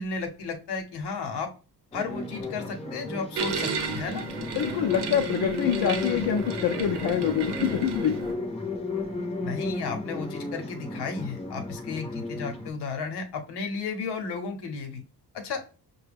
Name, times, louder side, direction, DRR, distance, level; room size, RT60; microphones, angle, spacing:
voice 1, 0.0-1.5 1.9-4.2 9.4-15.0 15.3-15.6, left 4 dB, 75° left, 5 dB, 0.9 m, -33 dB
sound 1, 1.9-12.7, left 2 dB, 15° left, 0.7 m, -34 dB
sound 2, 3.4-8.3, right 4 dB, 75° right, 0.8 m, -34 dB
voice 2, 4.6-8.2, left 8 dB, 60° left, 2 dB, 0.6 m, -25 dB
5.8 x 2.2 x 3.4 m, 0.35 s
cardioid pair, 170°, 41 cm